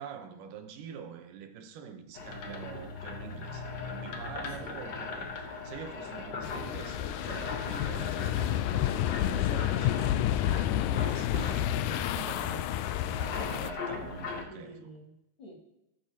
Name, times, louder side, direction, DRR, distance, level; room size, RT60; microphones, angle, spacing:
voice 1, 0.0-14.9, right 7 dB, 80° right, 2.6 m, -45 dB
sound 1, 2.1-14.4, left 4 dB, 65° left, 1.1 m, -39 dB
voice 2, 4.3-4.8 14.5-15.5, equal, 40° left, 2.8 m, -49 dB
sound 2, 6.4-13.7, left 12 dB, 80° left, 1.9 m, -30 dB
13.5 x 12.5 x 2.9 m
omnidirectional pair, 3.7 m